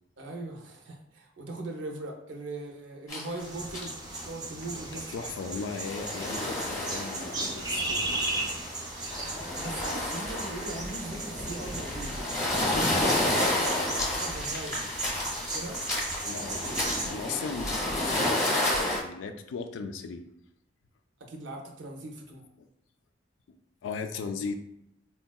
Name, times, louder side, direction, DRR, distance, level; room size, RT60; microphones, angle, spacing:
voice 1, 0.2-3.9 4.2-5.3 9.6-14.9 15.3-15.8 21.2-22.4, right 2 dB, 70° right, 2 dB, 0.6 m, -40 dB
sound 1, 3.1-3.4 3.7-4.3 4.6-4.7 5.4-19.0, left 1 dB, 15° left, 0.7 m, -31 dB
sound 2, 3.4-17.1, right 2 dB, 20° right, 0.4 m, -36 dB
voice 2, 4.9-8.2 16.3-20.2 23.8-24.6, left 5 dB, 80° left, 7 dB, 0.3 m, -37 dB
3.5 x 2.2 x 2.3 m, 0.81 s
head